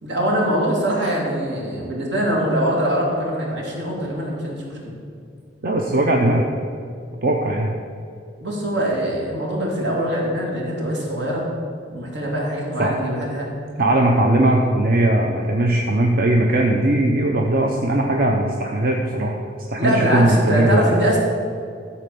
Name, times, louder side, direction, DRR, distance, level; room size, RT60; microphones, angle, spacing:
voice 1, 0.0-4.8 8.4-11.5 11.9-13.5 19.8-21.2, equal, 80° right, -3 dB, 2.5 m, -23 dB
voice 2, 5.6-6.4 7.2-7.7 12.8-13.0 13.8-19.4 19.7-21.0, right 1 dB, 55° right, 1 dB, 0.7 m, -19 dB
12.5 x 4.2 x 6.9 m, 2.4 s
head